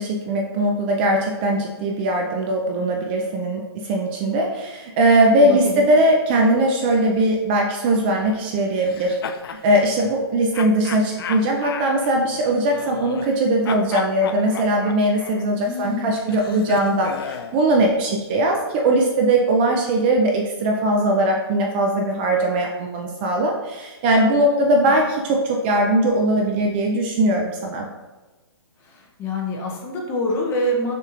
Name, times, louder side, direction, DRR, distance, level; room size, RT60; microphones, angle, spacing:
voice 1, 0.0-9.2 9.6-27.9, right 1 dB, 25° right, 1 dB, 0.3 m, -20 dB
voice 2, 5.4-5.9 15.6-16.1 28.8-30.9, left 1 dB, 15° left, 0 dB, 0.6 m, -26 dB
sound 1, 8.8-9.6 10.5-13.4 13.6-17.6, left 7 dB, 60° left, 0.4 m, -34 dB
6.6 x 3.0 x 2.4 m, 1.2 s
hypercardioid pair, 150°, 14 cm